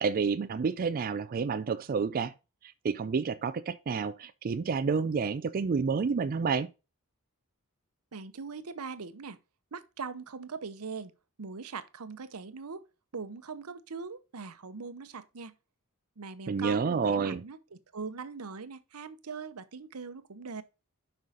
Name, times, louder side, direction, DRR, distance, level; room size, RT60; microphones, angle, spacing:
voice 1, 0.0-2.3 2.6-6.7 16.5-17.4, right 5 dB, 40° right, 0.4 m, -29 dB
voice 2, 8.1-9.4 9.7-11.1 11.4-12.9 13.1-15.5 16.2-20.6, right 5 dB, 85° right, 0.8 m, -41 dB
6.6 x 5.5 x 4.9 m
head